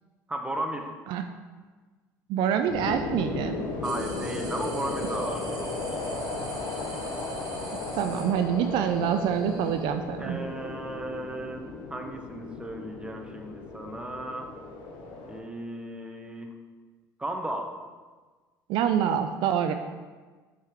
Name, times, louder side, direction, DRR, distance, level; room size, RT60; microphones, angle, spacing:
voice 1, 0.3-0.9 3.8-6.5 10.2-14.5 15.3-16.6 17.2-17.8, right 1 dB, 10° right, 3 dB, 0.8 m, -35 dB
voice 2, 2.3-3.6 8.0-10.5 18.7-19.7, right 8 dB, 70° right, 8 dB, 0.4 m, -26 dB
sound 1, 2.7-15.4, left 3 dB, 70° left, 0.9 m, -35 dB
sound 2, 3.8-9.8, right 4 dB, 50° right, 1.2 m, -45 dB
5.3 x 3.8 x 4.7 m, 1.4 s
supercardioid pair, 75°, 8 cm